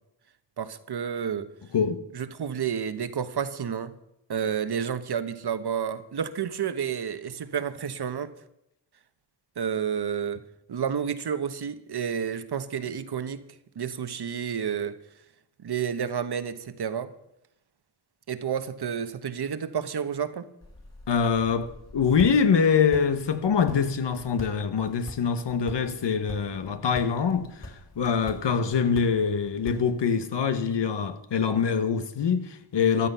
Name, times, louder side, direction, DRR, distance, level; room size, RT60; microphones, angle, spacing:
voice 1, 0.6-1.5 2.1-3.9 4.3-8.3 9.6-10.4 10.7-13.4 13.7-15.0 15.6-17.1 18.3-20.5, right 7 dB, 65° right, 1.2 m, -30 dB
sound 1, 20.6-30.2, left 1 dB, 35° left, 3.3 m, -45 dB
voice 2, 21.1-33.1, left 6 dB, 75° left, 1.4 m, -24 dB
15.0 x 11.5 x 5.6 m
cardioid pair, 70°, 42 cm